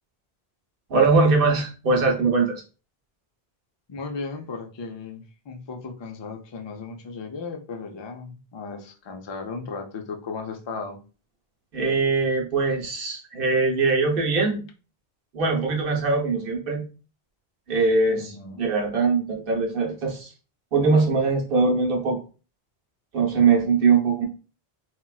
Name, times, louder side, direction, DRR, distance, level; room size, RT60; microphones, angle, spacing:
voice 1, 0.9-2.6 11.7-14.6 15.3-16.8 17.7-20.3 20.7-22.2 23.1-24.3, right 4 dB, 65° right, 1 dB, 0.9 m, -21 dB
voice 2, 3.9-11.0 18.1-18.7, left 4 dB, 40° left, 4 dB, 0.4 m, -36 dB
3.9 x 2.2 x 2.3 m, 0.34 s
omnidirectional pair, 1.0 m